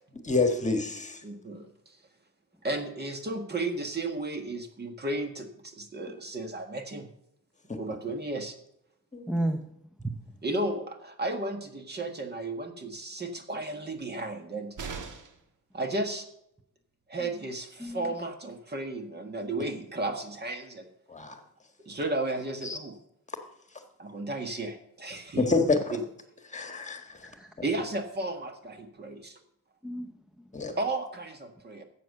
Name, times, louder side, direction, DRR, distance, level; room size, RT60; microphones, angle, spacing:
voice 1, 0.2-1.2 7.7-7.8 9.1-9.2 21.1-21.4 22.6-22.8 25.4-26.0 26.5-27.2 30.5-30.7, left 3 dB, 25° left, 1.5 m, -27 dB
voice 2, 1.2-2.0 2.6-7.1 7.7-8.5 10.4-14.8 15.7-16.2 17.1-20.9 21.8-23.0 24.0-25.4 25.9-26.0 27.6-29.4 30.8-31.8, right 2 dB, 35° right, 1.7 m, -34 dB
voice 3, 9.3-9.6 10.0-10.2 17.2-17.3 17.8-18.1 27.2-27.5 29.8-30.7, right 1 dB, ahead, 0.8 m, -33 dB
sound 1, 14.8-15.5 17.5-17.6 17.9-18.0, right 5 dB, 85° right, 1.6 m, -39 dB
13.5 x 8.0 x 6.7 m
wide cardioid pair, 165°, 30 cm